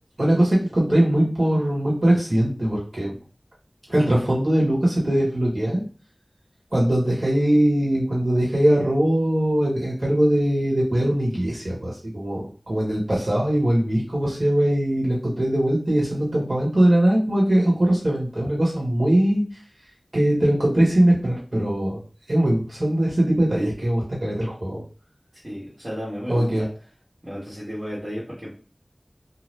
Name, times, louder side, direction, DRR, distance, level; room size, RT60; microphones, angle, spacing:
voice 1, 0.2-3.1 3.9-5.8 6.7-19.4 20.1-22.0 22.3-24.8 26.3-26.6, right 1 dB, 60° right, -5 dB, 1.3 m, -21 dB
voice 2, 25.4-26.7 27.2-28.5, equal, 45° right, -7 dB, 1.4 m, -33 dB
2.7 x 2.3 x 3.3 m, 0.38 s
wide cardioid pair, 50°, 0 cm